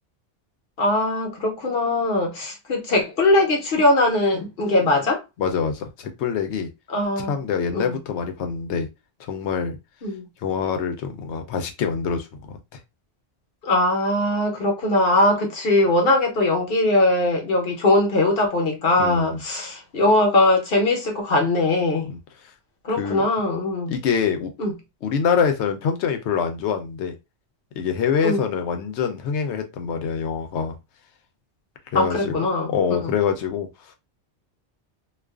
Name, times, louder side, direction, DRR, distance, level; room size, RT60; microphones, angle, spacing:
voice 1, 0.8-5.2 6.9-7.4 7.7-8.0 10.0-10.3 13.6-22.1 22.8-23.9 24.6-24.7 28.2-28.4 31.9-32.7 33.0-33.1, left 2 dB, 60° left, 1.0 m, -21 dB
voice 2, 5.4-6.7 7.2-8.9 9.2-9.8 10.4-12.6 19.0-19.4 22.1-22.2 22.9-23.3 23.9-24.5 25.0-27.2 27.8-30.8 31.9-32.4 32.7-33.7, left 6 dB, 85° left, 0.9 m, -25 dB
2.4 x 2.4 x 2.3 m
omnidirectional pair, 1.1 m